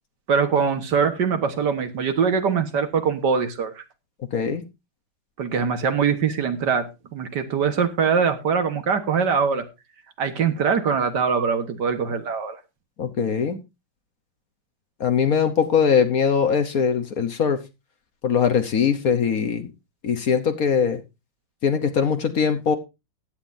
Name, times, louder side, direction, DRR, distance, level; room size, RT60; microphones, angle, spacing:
voice 1, 0.3-3.8 5.4-9.7 10.2-12.6, right 6 dB, 65° right, 8 dB, 1.9 m, -22 dB
voice 2, 4.3-4.6 13.0-13.6 15.0-17.6 18.2-19.7 20.0-21.0 21.6-22.8, left 6 dB, 55° left, 9 dB, 1.4 m, -21 dB
15.5 x 9.6 x 2.7 m, 0.25 s
omnidirectional pair, 2.0 m